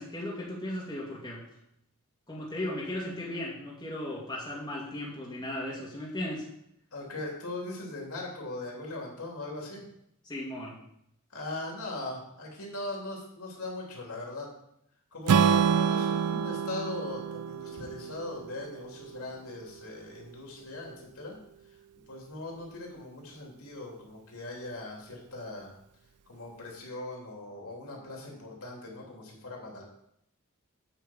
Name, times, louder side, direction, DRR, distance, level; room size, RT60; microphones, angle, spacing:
voice 1, 0.0-1.4 2.3-6.5 10.2-10.8, left 1 dB, 20° left, -5 dB, 2.2 m, -36 dB
voice 2, 6.9-9.8 11.3-14.5 15.1-21.4 22.1-25.7 26.3-29.8, left 2 dB, 75° left, -1 dB, 2.9 m, -39 dB
Strum, 15.3-19.5, right 7 dB, 80° right, 0.4 m, -27 dB
9.0 x 4.6 x 7.1 m, 0.76 s
head